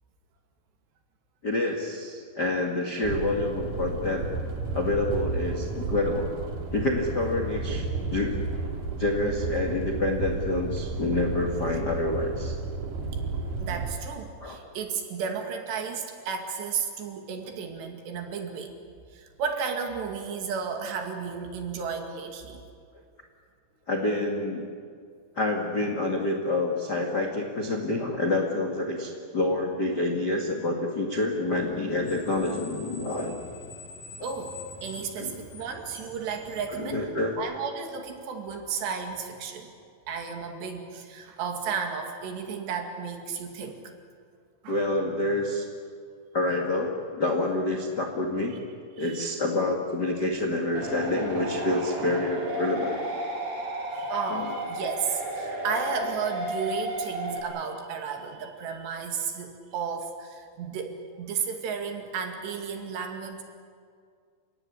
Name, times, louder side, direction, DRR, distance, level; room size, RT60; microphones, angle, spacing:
voice 1, 1.4-4.2 4.7-6.3 6.7-8.4 9.0-12.6 14.4-14.6 23.9-24.6 25.3-33.3 35.0-35.3 36.8-37.3 44.7-45.6 46.3-48.6 49.0-52.9 54.3-54.5, left 2 dB, 60° left, 2 dB, 1.1 m, -27 dB
sound 1, 3.0-13.9, right 3 dB, 50° right, 3.7 m, -32 dB
voice 2, 13.6-18.7 19.1-22.6 34.2-37.0 37.4-39.7 40.1-43.8 44.6-44.8 49.0-49.2 52.0-52.1 53.9-63.4, right 6 dB, 65° right, 4 dB, 4.2 m, -33 dB
Screech, 31.6-37.4, left 2 dB, 75° left, 5.1 m, -45 dB
sound 2, 50.8-57.4, right 1 dB, 85° right, 8.4 m, -33 dB
29.5 x 17.0 x 9.9 m, 2.2 s
omnidirectional pair, 5.4 m